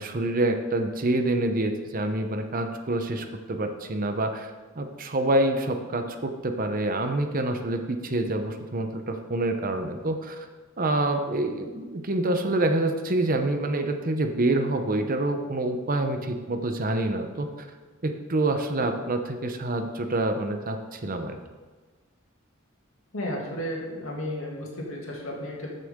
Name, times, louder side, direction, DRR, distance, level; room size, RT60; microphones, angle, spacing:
voice 1, 0.0-4.5 4.8-10.5 10.8-17.7 18.0-21.4, right 2 dB, 45° right, 6 dB, 0.8 m, -27 dB
voice 2, 23.1-25.7, equal, 85° left, -2 dB, 2.5 m, -33 dB
14.5 x 6.6 x 3.7 m, 1.3 s
head